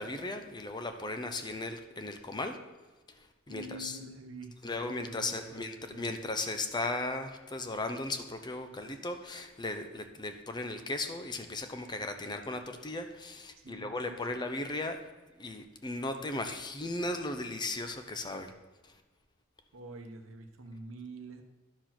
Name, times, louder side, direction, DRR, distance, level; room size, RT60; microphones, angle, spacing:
voice 1, 0.0-2.6 3.2-4.0 4.6-15.1 15.4-18.5 18.8-18.9, left 2 dB, 20° left, 7 dB, 0.7 m, -36 dB
voice 2, 3.5-6.1 8.7-9.1 13.6-14.4 19.7-21.4, right 2 dB, 80° right, 6 dB, 1.0 m, -47 dB
11.5 x 4.6 x 5.9 m, 1.3 s
head